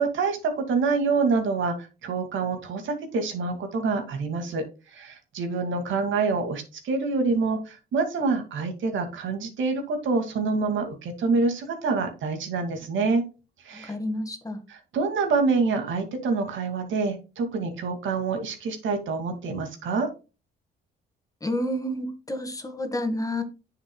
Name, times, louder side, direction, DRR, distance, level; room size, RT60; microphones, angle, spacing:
voice 1, 0.0-1.8 2.0-4.6 4.9-13.2 13.6-13.9 14.7-20.1, right 4 dB, 75° right, 6 dB, 2.3 m, -26 dB
voice 2, 13.7-14.6 21.4-23.4, left 1 dB, 15° left, 7 dB, 1.8 m, -29 dB
9.6 x 7.0 x 2.3 m, 0.30 s
cardioid pair, 90°, 20 cm